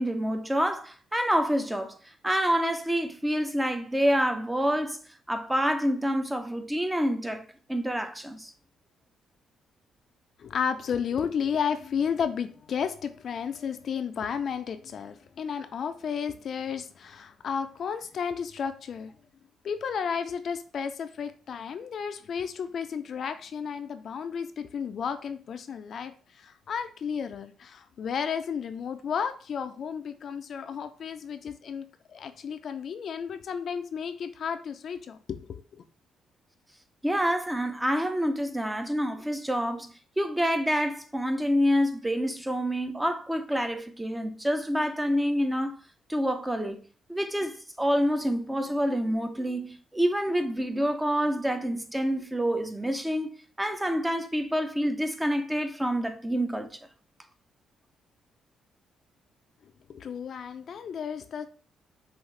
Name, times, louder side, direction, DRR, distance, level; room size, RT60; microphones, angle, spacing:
voice 1, 0.0-2.0 2.2-5.0 5.3-7.4 7.7-8.5 37.0-39.9 40.2-45.8 46.1-46.8 47.1-53.3 53.6-56.7, equal, 10° right, 0.5 m, -27 dB
voice 2, 10.4-19.1 19.6-35.8 59.6-61.5, left 7 dB, 55° left, 0.4 m, -33 dB
5.7 x 2.5 x 3.2 m
cardioid pair, 90°, 0 cm